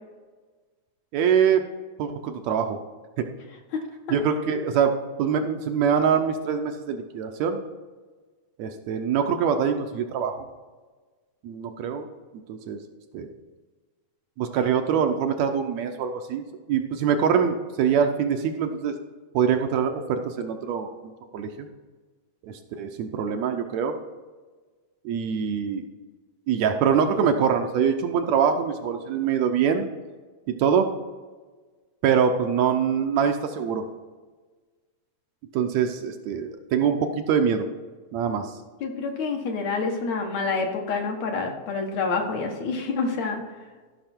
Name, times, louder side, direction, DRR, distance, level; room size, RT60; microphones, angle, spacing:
voice 1, 1.1-1.6 2.0-2.8 3.2-3.3 4.1-4.9 5.2-7.6 8.6-10.5 11.4-12.0 12.5-12.8 13.1-13.3 14.4-18.9 19.3-20.9 21.3-21.7 22.4-23.9 25.0-25.8 26.5-29.9 30.5-30.9 32.0-33.8 35.5-37.7 38.1-38.5, right 7 dB, 75° right, 5 dB, 1.9 m, -24 dB
voice 2, 38.8-43.4, left 4 dB, 70° left, 2 dB, 2.6 m, -27 dB
14.0 x 5.9 x 4.4 m, 1.4 s
omnidirectional pair, 3.4 m